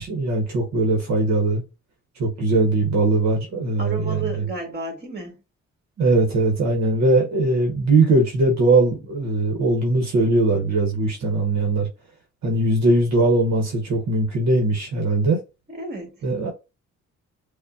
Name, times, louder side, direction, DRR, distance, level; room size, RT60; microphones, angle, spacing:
voice 1, 0.0-1.6 2.2-4.4 6.0-11.9 12.4-15.4 16.2-16.5, right 2 dB, 65° right, 1.0 m, -20 dB
voice 2, 3.8-5.4 15.7-16.2, right 2 dB, 35° right, 1.7 m, -32 dB
5.0 x 2.2 x 2.5 m
cardioid pair, 90°, 30 cm